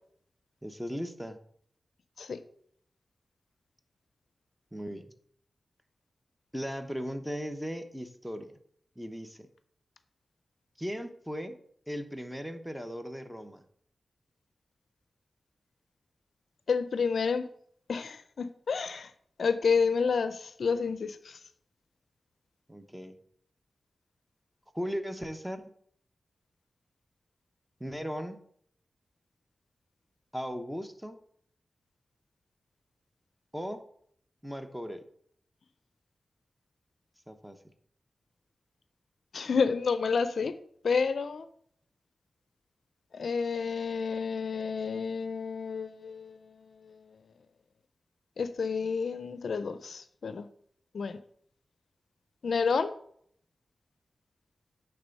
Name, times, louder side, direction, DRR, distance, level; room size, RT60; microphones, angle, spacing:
voice 1, 0.6-1.4 4.7-5.1 6.5-8.6 9.0-9.4 10.8-11.6 11.9-13.6 22.7-23.2 24.7-25.6 27.8-28.4 30.3-31.2 33.5-33.8 34.4-35.0 37.3-37.6, equal, 5° right, 7 dB, 0.9 m, -37 dB
voice 2, 16.7-17.5 17.9-19.1 19.4-21.2 39.3-40.5 40.8-41.5 43.1-46.4 48.4-50.5 50.9-51.1 52.4-52.9, left 5 dB, 80° left, 12 dB, 0.4 m, -29 dB
9.6 x 3.4 x 5.2 m, 0.65 s
cardioid pair, 60°, 0 cm